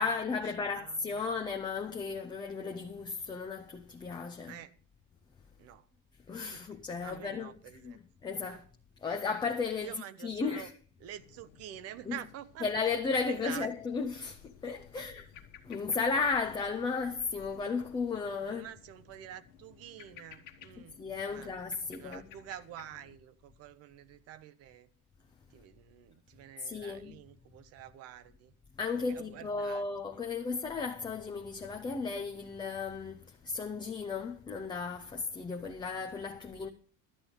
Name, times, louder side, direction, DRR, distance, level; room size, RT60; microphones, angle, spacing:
voice 1, 0.0-4.6 6.3-7.5 7.8-7.9 8.2-8.6 9.0-9.9 10.2-10.7 12.1-12.2 12.6-15.2 15.6-18.7 21.0-22.3 26.6-27.1 28.8-36.7, left 4 dB, 10° left, 0.5 m, -34 dB
voice 2, 0.7-1.5 4.5-4.7 5.6-5.9 6.5-8.0 8.5-8.6 9.8-10.7 11.0-12.7 13.2-13.7 14.9-15.0 18.4-21.5 21.9-24.9 25.5-28.5 29.0-29.8, right 12 dB, 40° right, 0.8 m, -48 dB
sound 1, 11.2-23.2, left 8 dB, 55° left, 1.4 m, -56 dB
12.5 x 8.8 x 5.3 m
cardioid pair, 170°, 37 cm